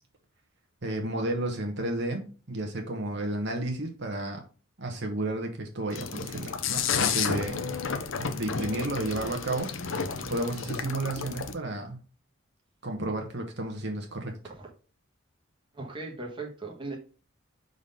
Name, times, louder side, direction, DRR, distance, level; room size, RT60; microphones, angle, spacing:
voice 1, 0.8-4.4 4.8-7.7 8.2-12.0 12.8-14.4, right 2 dB, 55° right, 2 dB, 1.1 m, -32 dB
sound 1, 5.9-11.5, left 6 dB, 65° left, 0.7 m, -31 dB
voice 2, 15.7-17.0, right 3 dB, 25° right, 0 dB, 1.3 m, -38 dB
5.1 x 4.0 x 5.4 m, 0.38 s
head